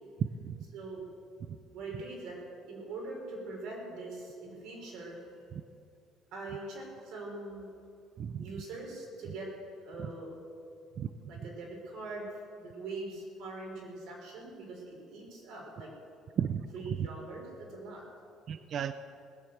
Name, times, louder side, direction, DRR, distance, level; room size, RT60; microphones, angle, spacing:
voice 1, 0.2-0.6 1.5-1.6 8.2-8.5 10.0-10.1 11.0-11.1 16.4-16.7 18.5-18.9, right 8 dB, 35° right, 11 dB, 0.4 m, -33 dB
voice 2, 0.7-1.0 1.7-2.4 2.7-5.2 6.3-7.7 8.4-9.5 9.8-10.4 11.3-15.9 16.7-18.0, right 2 dB, 60° right, -1 dB, 4.7 m, -42 dB
19.0 x 8.2 x 7.7 m, 2.4 s
cardioid pair, 175°, 0 cm